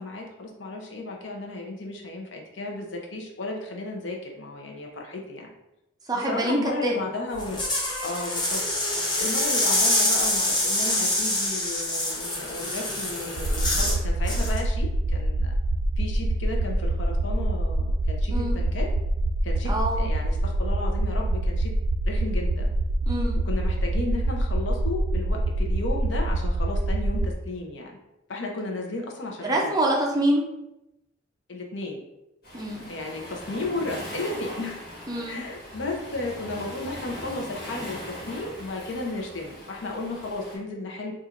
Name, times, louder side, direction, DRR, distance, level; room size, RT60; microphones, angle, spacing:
voice 1, 0.0-5.5 6.1-7.6 8.0-8.6 9.2-15.5 16.0-18.9 19.4-21.7 22.0-22.7 23.4-28.0 28.3-29.7 31.5-32.0 32.9-34.8 35.3-41.1, left 2 dB, 75° left, 1 dB, 0.7 m, -34 dB
voice 2, 6.1-7.0 18.3-18.6 19.7-20.1 23.1-23.4 29.4-30.4 32.5-32.9 35.1-35.4, right 1 dB, 20° right, -1 dB, 0.5 m, -25 dB
sound 1, 7.3-14.0 14.3-14.6, left 1 dB, 25° left, 0.8 m, -26 dB
sound 2, 13.4-27.3, right 2 dB, 80° right, 0.3 m, -25 dB
Waves surf, 32.4-40.6, equal, 55° left, 1.4 m, -40 dB
4.3 x 2.5 x 2.5 m, 0.90 s
head